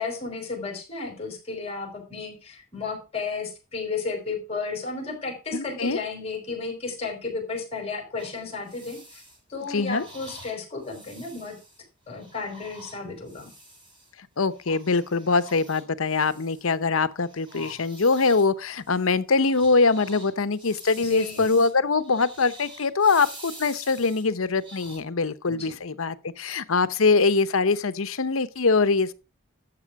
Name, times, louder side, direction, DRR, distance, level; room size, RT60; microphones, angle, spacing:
voice 1, 0.0-9.2 9.5-11.6 12.1-13.5 21.0-21.5 25.5-25.7, left 4 dB, 30° left, 4.6 m, -33 dB
voice 2, 5.5-6.0 9.7-10.1 14.4-29.1, left 4 dB, 75° left, 0.8 m, -23 dB
sound 1, 8.2-14.1 14.5-16.9 17.2-25.0, right 1 dB, 25° right, 6.7 m, -47 dB
13.0 x 7.6 x 4.7 m
head